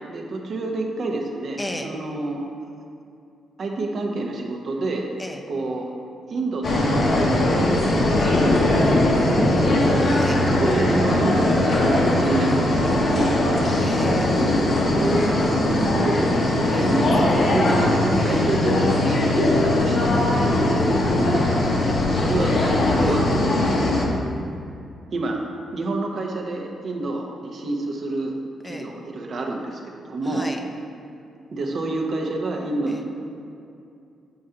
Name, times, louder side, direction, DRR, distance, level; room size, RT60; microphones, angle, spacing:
voice 1, 0.1-2.5 3.6-5.1 5.5-5.9 6.3-7.8 8.2-9.9 10.5-13.8 14.9-20.8 21.8-24.1 25.1-25.4 25.7-28.4 28.7-30.5 31.5-33.0, right 2 dB, 60° right, 1 dB, 0.8 m, -28 dB
voice 2, 1.6-1.9 5.2-5.4 8.2-8.4 10.0-10.4 13.8-14.3 16.7-16.9 18.3-18.4 21.0-21.9 23.0-23.2 28.6-28.9 30.2-30.6 32.9-33.0, left 1 dB, 15° left, 3 dB, 0.6 m, -35 dB
sound 1, 6.6-24.0, left 1 dB, 60° left, 1.0 m, -20 dB
6.9 x 4.4 x 3.8 m, 2.5 s
cardioid pair, 70°, 0 cm